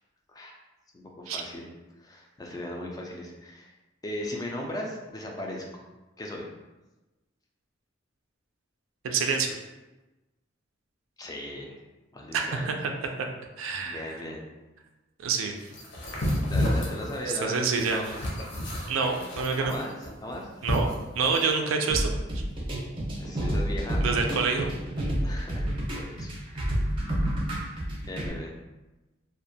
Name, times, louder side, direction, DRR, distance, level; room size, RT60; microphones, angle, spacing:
voice 1, 0.9-1.7 2.0-3.7 4.0-5.8 6.2-6.5 11.2-11.8 12.1-12.6 13.9-14.4 16.5-18.1 19.6-20.0 20.2-20.5 23.2-24.1 25.2-27.0 28.1-28.5, left 1 dB, 20° left, 0 dB, 0.3 m, -37 dB
voice 2, 9.0-9.5 12.3-12.9 13.2-13.3 13.6-14.2 15.2-15.5 17.4-18.1 18.9-19.7 20.6-22.4 24.0-24.7, right 5 dB, 80° right, 4 dB, 0.3 m, -27 dB
sound 1, 15.7-21.5, left 1 dB, 65° left, 0.6 m, -30 dB
sound 2, 21.9-28.3, equal, 25° right, 0.6 m, -29 dB
2.4 x 2.2 x 2.6 m, 1.1 s
head